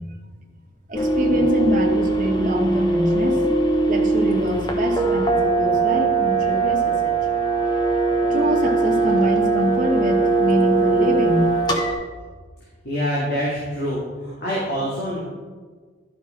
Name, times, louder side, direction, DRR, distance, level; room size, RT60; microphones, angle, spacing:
sound 1, 0.9-11.9, right 3 dB, 25° left, 0.7 m, -20 dB
voice 1, 0.9-3.4 3.9-7.1 8.3-11.5, equal, 45° right, 0 dB, 1.0 m, -25 dB
voice 2, 12.8-15.2, equal, 60° left, -7 dB, 1.9 m, -25 dB
11.0 x 5.3 x 3.7 m, 1.4 s
head